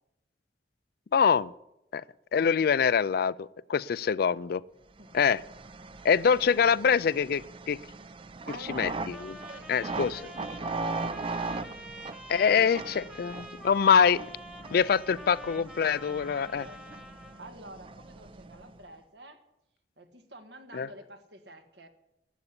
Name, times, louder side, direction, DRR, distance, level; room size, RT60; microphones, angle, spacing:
voice 1, 1.1-1.5 1.9-2.0 2.3-4.6 5.1-5.4 6.0-7.8 8.7-9.3 9.7-10.2 12.3-14.2 14.7-16.7 20.7-20.9, left 6 dB, 60° left, 20 dB, 0.4 m, -24 dB
sound 1, 5.0-18.9, right 3 dB, 30° right, 0.5 m, -40 dB
voice 2, 8.5-11.4 11.7-11.9 12.3-13.1 16.1-17.0 17.4-19.4 20.0-21.9, right 1 dB, 75° right, 7 dB, 1.8 m, -49 dB
Trumpet, 8.6-17.5, equal, 5° right, 1.3 m, -46 dB
12.0 x 8.3 x 9.7 m, 0.87 s
head